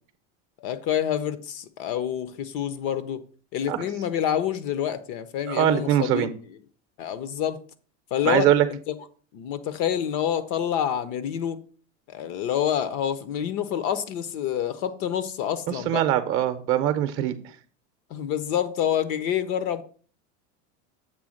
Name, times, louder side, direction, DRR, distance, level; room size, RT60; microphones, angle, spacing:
voice 1, 0.6-3.2 3.5-6.3 7.0-7.6 8.1-8.5 8.9-9.0 9.3-11.6 12.1-16.0 18.1-19.8, left 9 dB, 40° left, 0.6 m, -27 dB
voice 2, 5.5-6.3 8.2-8.7 15.7-17.3, right 11 dB, 35° right, 0.7 m, -22 dB
7.5 x 3.4 x 6.3 m
supercardioid pair, 155°, 36 cm